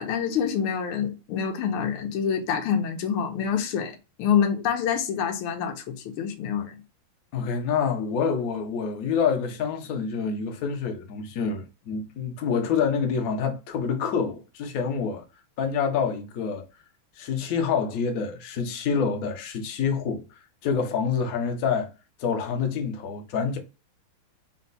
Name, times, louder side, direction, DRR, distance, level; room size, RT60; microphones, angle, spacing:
voice 1, 0.0-6.8, left 7 dB, 80° left, 1.6 m, -26 dB
voice 2, 7.3-15.2 15.6-16.6 17.2-20.2 20.6-21.9 22.2-23.6, left 6 dB, 60° left, 0.9 m, -27 dB
4.2 x 2.2 x 3.9 m
omnidirectional pair, 2.4 m